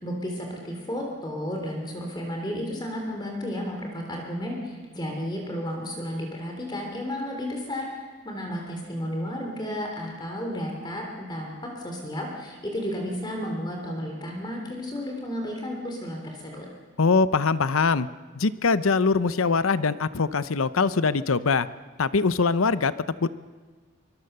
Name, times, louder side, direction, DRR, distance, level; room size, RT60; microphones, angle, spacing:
voice 1, 0.0-7.9 8.2-16.7, equal, 20° left, 1 dB, 3.3 m, -32 dB
voice 2, 17.0-18.1 18.3-21.7 22.0-22.9 23.2-23.3, left 4 dB, 85° left, 15 dB, 0.7 m, -22 dB
24.0 x 22.0 x 6.8 m, 1.4 s
head